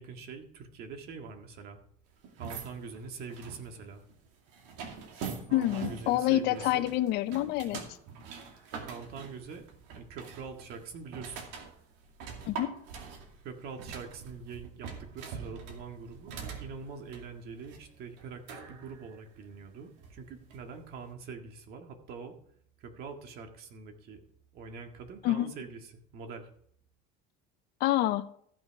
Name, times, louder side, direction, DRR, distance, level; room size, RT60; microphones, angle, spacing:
voice 1, 0.0-1.8 2.4-4.0 5.5-6.9 8.7-9.6 9.9-11.4 13.4-22.4 22.8-24.2 24.5-26.5, right 5 dB, 55° right, 5 dB, 1.8 m, -44 dB
sound 1, 2.2-20.8, right 6 dB, 75° right, 2.4 m, -44 dB
voice 2, 5.5-7.8 12.5-12.7 25.2-25.5 27.8-28.3, left 14 dB, 60° left, 10 dB, 0.7 m, -27 dB
14.0 x 6.1 x 4.8 m, 0.65 s
cardioid pair, 130°, 19 cm